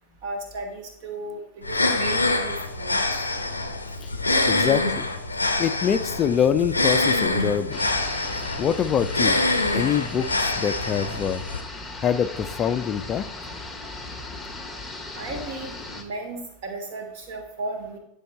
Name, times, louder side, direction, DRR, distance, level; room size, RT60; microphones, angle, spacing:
voice 1, 0.2-3.0 15.1-18.0, right 2 dB, 50° right, 4 dB, 1.5 m, -35 dB
sound 1, 1.6-11.6, left 2 dB, 85° left, 0.5 m, -25 dB
voice 2, 4.5-5.1 5.6-7.8 8.6-9.4 9.7-11.4 12.0-13.3, left 8 dB, 30° left, 10 dB, 0.4 m, -24 dB
sound 2, 7.7-16.0, left 2 dB, 5° left, 1.0 m, -37 dB
9.1 x 3.4 x 4.2 m, 0.78 s
figure-of-eight pair, 85°, 0 cm